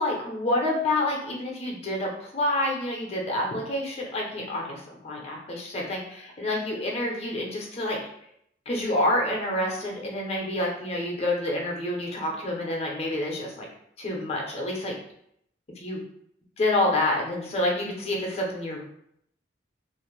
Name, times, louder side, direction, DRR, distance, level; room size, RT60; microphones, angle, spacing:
voice 1, 0.0-8.0 8.7-13.7 14.0-14.9 15.8-16.0 16.6-18.8, left 1 dB, 35° left, -1 dB, 0.6 m, -28 dB
2.4 x 2.0 x 3.0 m, 0.72 s
head